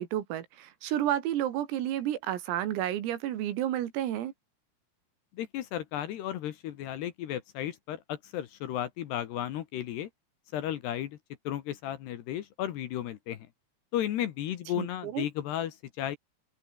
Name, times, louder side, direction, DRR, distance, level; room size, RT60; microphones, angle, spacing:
voice 1, 0.0-4.3 14.8-15.3, right 12 dB, 85° right, 4.9 m, -31 dB
voice 2, 5.3-10.1 10.5-11.2 11.4-13.5 13.9-16.2, left 11 dB, 65° left, 3.0 m, -34 dB
open air
omnidirectional pair, 5.9 m